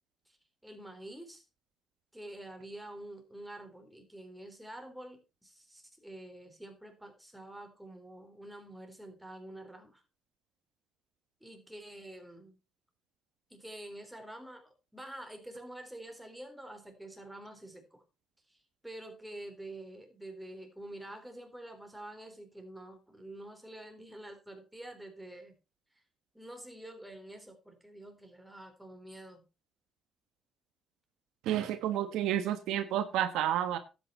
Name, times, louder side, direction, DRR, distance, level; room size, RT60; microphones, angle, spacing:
voice 1, 0.6-1.4 2.1-10.0 11.4-12.6 13.5-18.0 18.5-25.5 26.3-29.4, right 1 dB, 5° right, 4.0 m, -47 dB
voice 2, 31.4-33.8, right 11 dB, 85° right, 1.3 m, -30 dB
12.0 x 9.0 x 4.4 m
cardioid pair, 90°, 0 cm